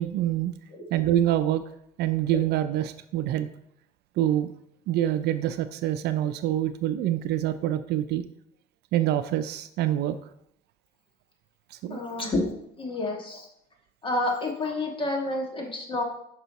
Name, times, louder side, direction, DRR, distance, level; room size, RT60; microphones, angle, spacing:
voice 1, 0.0-0.5 0.9-1.6 2.0-3.5 4.2-4.5 4.9-8.2 8.9-10.1 11.8-12.0, right 12 dB, 75° right, 11 dB, 0.4 m, -25 dB
voice 2, 11.9-12.5 12.8-13.5 14.0-16.0, left 2 dB, 30° left, 0 dB, 1.7 m, -29 dB
5.6 x 5.5 x 4.0 m, 0.74 s
cardioid pair, 110°, 17 cm